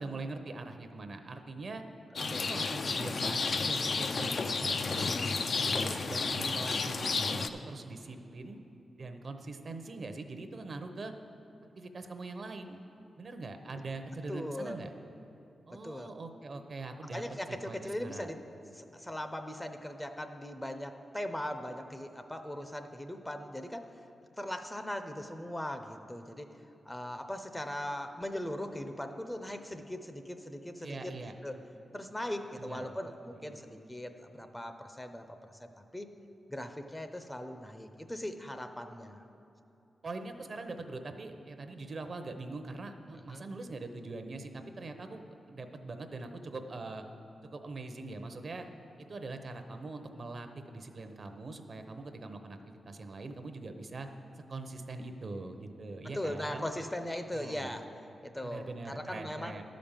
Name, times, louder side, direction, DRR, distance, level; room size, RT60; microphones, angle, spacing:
voice 1, 0.0-1.8 2.2-8.6 9.0-11.1 11.8-12.8 13.2-14.9 15.7-17.2 17.5-18.4 30.8-31.3 32.6-33.0 33.3-33.6 40.0-47.0 47.4-48.7 49.0-54.1 54.5-56.7 57.3-57.7 58.4-59.6, right 3 dB, 50° right, 7 dB, 0.8 m, -42 dB
Rain, 2.2-7.5, left 4 dB, 55° left, 0.5 m, -32 dB
voice 2, 14.3-14.8 15.7-16.1 17.0-18.4 18.7-23.8 24.4-26.5 26.9-31.1 31.4-31.5 31.9-36.1 36.5-39.2 43.1-43.5 56.1-57.8 58.2-59.6, left 1 dB, 10° left, 7 dB, 0.6 m, -39 dB
11.5 x 5.2 x 7.3 m, 2.9 s
cardioid pair, 90°, 0 cm